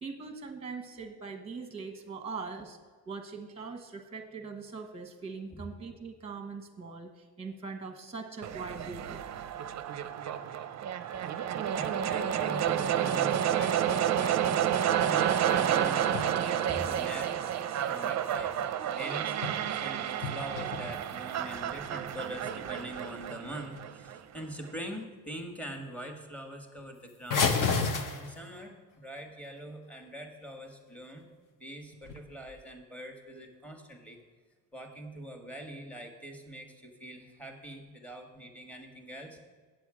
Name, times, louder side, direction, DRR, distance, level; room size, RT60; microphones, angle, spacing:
voice 1, 0.0-2.8 3.1-9.2, right 4 dB, 15° right, 5 dB, 1.1 m, -41 dB
sound 1, 8.4-24.4, right 10 dB, 45° right, 0.5 m, -30 dB
voice 2, 11.7-14.8 15.0-17.4 17.9-27.5 28.1-31.3 31.6-34.2 34.7-39.4, right 1 dB, 5° left, 4 dB, 1.4 m, -43 dB
sound 2, 15.1-16.4 16.7-18.6 19.2-19.9 20.1-21.5 22.1-22.2 22.6-22.8 23.2-23.4 23.6-24.1 24.5-25.0 25.3-25.4 25.8-25.9 26.2-26.3 27.3-28.7 31.9-32.6, left 4 dB, 50° left, 1.0 m, -34 dB
8.1 x 7.6 x 4.9 m, 1.5 s
cardioid pair, 95°, 39 cm